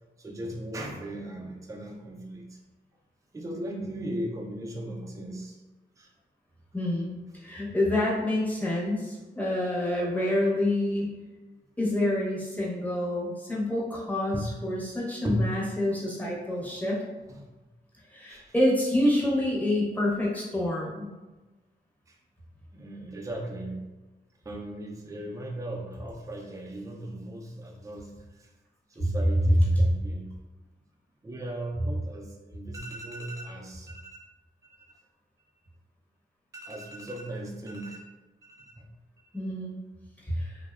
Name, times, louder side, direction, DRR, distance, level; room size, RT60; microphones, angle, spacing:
voice 1, 0.2-2.6 3.3-5.6 6.0-6.1 14.3-14.6 15.2-15.5 15.9-16.0 16.6-16.8 17.3-17.6 18.3-18.5 22.1-22.2 22.7-23.8 24.4-28.5 28.9-30.3 31.2-34.2 34.7-35.0 36.5-38.0 38.4-38.9, right 1 dB, 20° right, -1 dB, 0.4 m, -37 dB
voice 2, 6.7-11.1 11.8-17.0 18.1-21.1 29.0-29.1 29.8-29.9 39.3-39.8 40.2-40.6, left 1 dB, 10° left, -5 dB, 0.7 m, -27 dB
2.7 x 2.0 x 2.3 m, 1.2 s
cardioid pair, 70°, 18 cm